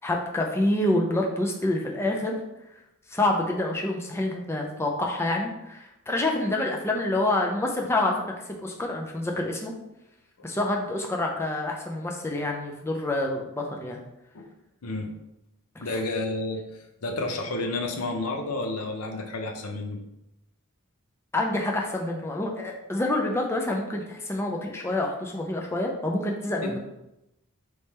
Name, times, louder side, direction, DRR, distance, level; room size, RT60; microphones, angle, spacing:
voice 1, 0.0-2.4 3.1-8.3 8.6-9.7 10.4-14.0 15.8-16.0 21.3-26.8, left 1 dB, 10° left, 1 dB, 0.4 m, -27 dB
voice 2, 14.8-15.1 15.8-16.6 17.0-20.0 26.6-26.8, left 2 dB, 85° left, 3 dB, 0.7 m, -30 dB
3.4 x 3.2 x 4.2 m, 0.89 s
head